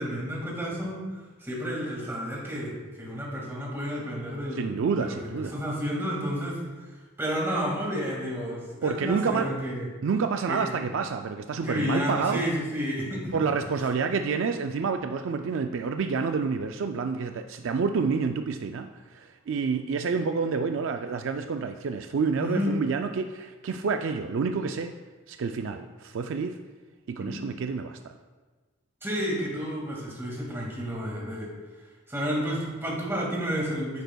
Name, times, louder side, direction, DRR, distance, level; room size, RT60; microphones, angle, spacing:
voice 1, 0.0-4.7 5.0-5.2 5.5-6.6 7.2-9.9 10.5-10.8 11.6-13.3 22.4-22.7 27.2-27.4 29.0-31.5 32.1-34.0, equal, 10° right, -3 dB, 2.0 m, -31 dB
voice 2, 4.5-5.6 8.8-9.5 10.0-12.4 13.3-24.9 25.3-26.5 27.1-28.0, right 5 dB, 60° right, 6 dB, 0.3 m, -28 dB
10.5 x 7.9 x 2.3 m, 1.3 s
head